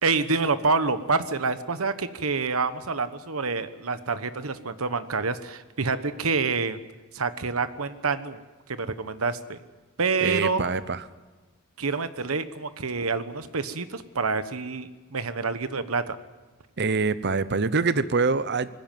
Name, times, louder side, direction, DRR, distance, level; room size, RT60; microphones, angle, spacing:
voice 1, 0.0-6.8 7.1-8.4 8.7-9.6 10.0-10.6 11.8-16.2, right 4 dB, 80° right, 12 dB, 1.2 m, -27 dB
voice 2, 10.2-11.1 16.8-18.7, right 4 dB, 50° right, 15 dB, 0.8 m, -25 dB
20.0 x 15.5 x 9.2 m, 1.2 s
head